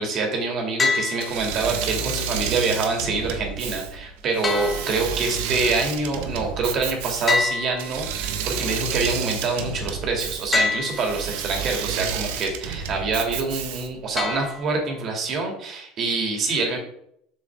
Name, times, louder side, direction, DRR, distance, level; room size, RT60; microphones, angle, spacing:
voice 1, 0.0-16.8, right 3 dB, 45° right, 2 dB, 2.5 m, -26 dB
sound 1, 0.8-1.8 4.4-5.5 7.3-8.5 10.5-11.5 14.2-15.1, left 4 dB, 25° left, 1.1 m, -27 dB
Engine / Mechanisms, 1.2-14.1, right 7 dB, 80° right, 1.0 m, -30 dB
7.6 x 6.3 x 3.6 m, 0.72 s
supercardioid pair, 120°, 0 cm